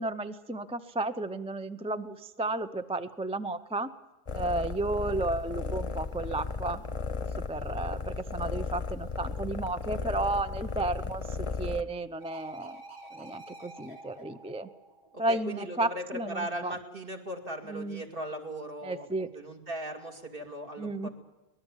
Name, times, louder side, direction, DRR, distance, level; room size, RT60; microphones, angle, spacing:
voice 1, 0.0-3.9 4.3-6.8 7.5-11.2 11.6-12.8 13.1-14.7 15.2-16.7 17.7-18.0 18.8-19.3 20.8-21.1, right 2 dB, 10° right, 10 dB, 0.4 m, -33 dB
sound 1, 4.3-11.8, left 4 dB, 30° left, 0.9 m, -35 dB
sound 2, 12.2-15.7 19.3-19.4, right 2 dB, 90° right, 4.9 m, -49 dB
voice 2, 15.1-21.1, right 1 dB, 50° right, 2 dB, 2.8 m, -38 dB
24.0 x 19.5 x 7.3 m, 1.1 s
omnidirectional pair, 1.2 m